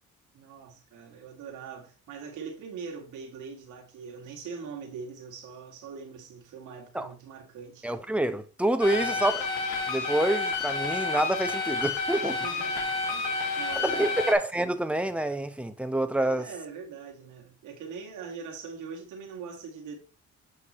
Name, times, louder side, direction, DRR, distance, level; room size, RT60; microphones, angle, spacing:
voice 1, 0.3-7.9 8.9-9.2 12.2-14.2 16.2-20.0, right 5 dB, 85° right, 2.4 m, -42 dB
voice 2, 7.8-9.5 9.9-12.3 13.8-16.5, right 1 dB, 5° right, 1.0 m, -27 dB
sound 1, 8.8-14.3, left 4 dB, 85° left, 2.1 m, -30 dB
8.5 x 5.9 x 3.2 m
cardioid pair, 90°, 30 cm